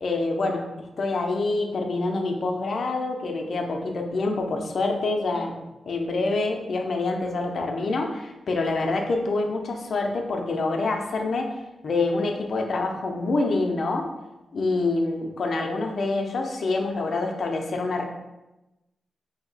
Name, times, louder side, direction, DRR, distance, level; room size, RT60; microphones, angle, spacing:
voice 1, 0.0-5.6 5.8-11.6 11.8-14.1 14.5-18.0, left 3 dB, 55° left, 2 dB, 0.5 m, -26 dB
2.8 x 2.7 x 4.0 m, 0.99 s
wide cardioid pair, 135°, 0 cm